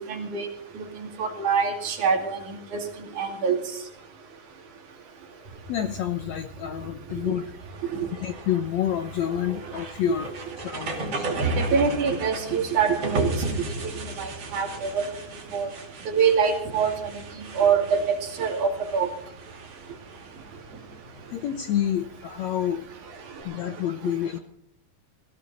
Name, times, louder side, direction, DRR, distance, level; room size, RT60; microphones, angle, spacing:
voice 1, 0.1-0.5 0.8-2.8 3.2-3.6 7.2-7.3 7.9-8.1 11.4-13.6 14.0-15.1 15.5-15.7 16.1-17.0 17.6-19.1, right 6 dB, 60° right, 4 dB, 3.7 m, -25 dB
sound 1, 5.5-23.4, right 2 dB, 45° right, 3.6 m, -35 dB
voice 2, 5.7-7.5 8.1-11.3 21.3-22.8 23.4-24.4, left 11 dB, 70° left, 9 dB, 1.8 m, -28 dB
18.0 x 16.0 x 4.2 m, 0.70 s
omnidirectional pair, 4.1 m